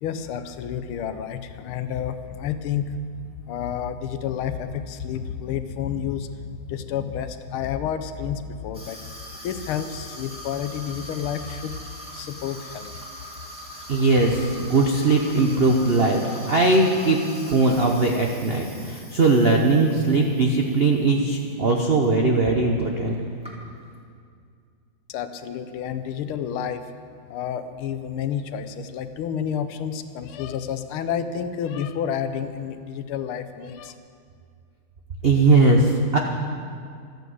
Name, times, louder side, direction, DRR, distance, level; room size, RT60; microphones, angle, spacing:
voice 1, 0.0-3.0 3.5-9.0 9.4-11.8 12.1-13.0 25.1-26.9 27.3-33.9, left 8 dB, 75° left, 10 dB, 1.5 m, -30 dB
Water tap faucet / Sink (filling or washing), 8.7-21.4 21.8-22.1 22.8-22.9 23.1-24.0, equal, 5° right, 2.0 m, -42 dB
voice 2, 13.9-16.2 16.5-17.2 17.5-23.1 35.2-36.2, right 3 dB, 60° right, 1 dB, 0.6 m, -19 dB
13.5 x 9.2 x 7.8 m, 2.3 s
omnidirectional pair, 2.4 m